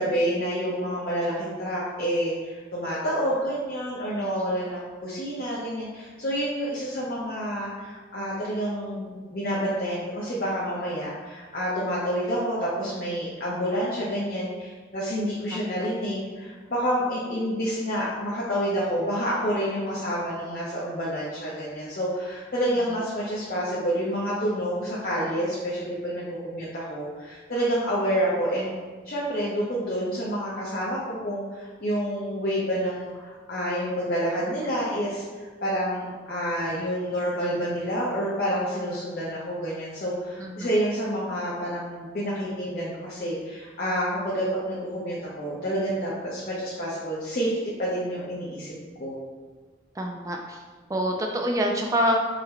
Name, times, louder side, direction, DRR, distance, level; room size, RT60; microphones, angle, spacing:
voice 1, 0.0-28.7 29.0-35.3 35.6-47.5 47.8-48.7 49.0-49.2, equal, 50° left, -7 dB, 0.6 m, -28 dB
voice 2, 50.0-50.6 50.9-52.2, equal, 15° right, 2 dB, 0.3 m, -26 dB
3.8 x 2.1 x 4.3 m, 1.4 s
head